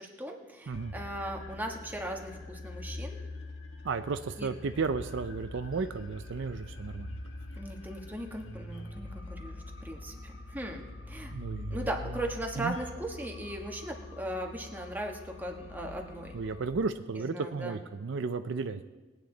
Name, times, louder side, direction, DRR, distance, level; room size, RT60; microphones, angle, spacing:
voice 1, 0.0-3.2 4.4-4.5 7.6-11.3 11.7-16.4 17.2-17.8, right 1 dB, 10° right, 1 dB, 1.4 m, -38 dB
sound 1, 0.7-16.7, left 2 dB, 80° left, 1.5 m, -44 dB
voice 2, 3.8-7.2 11.3-11.9 12.6-12.8 16.3-18.8, right 4 dB, 65° right, 9 dB, 0.5 m, -33 dB
21.0 x 9.0 x 3.9 m, 1.2 s
head